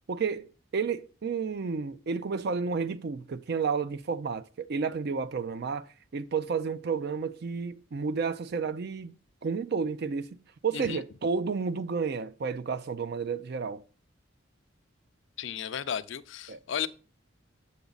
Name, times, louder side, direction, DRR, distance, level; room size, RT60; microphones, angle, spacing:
voice 1, 0.1-0.5 0.7-5.9 6.1-9.2 9.4-10.4 10.6-13.8 16.5-16.6, right 5 dB, 50° right, 0.4 m, -31 dB
voice 2, 15.4-16.9, left 8 dB, 60° left, 0.4 m, -34 dB
7.1 x 6.0 x 3.9 m
head